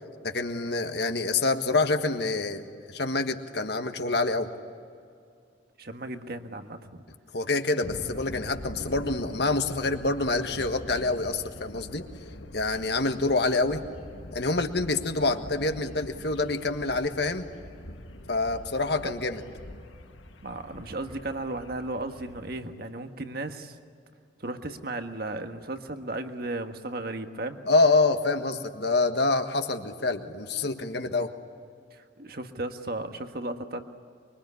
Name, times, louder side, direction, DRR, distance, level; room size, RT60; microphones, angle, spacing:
voice 1, 0.2-4.5 7.3-12.0 12.5-13.8 14.3-17.5 18.3-19.4 27.7-31.3, left 3 dB, 60° left, 6 dB, 1.6 m, -26 dB
voice 2, 5.8-7.0 19.0-19.1 20.4-23.8 24.4-27.6 31.9-33.8, right 2 dB, 50° right, 7 dB, 1.6 m, -35 dB
sound 1, 7.8-22.6, left 1 dB, 90° left, 1.9 m, -44 dB
25.0 x 24.0 x 9.8 m, 2.3 s
head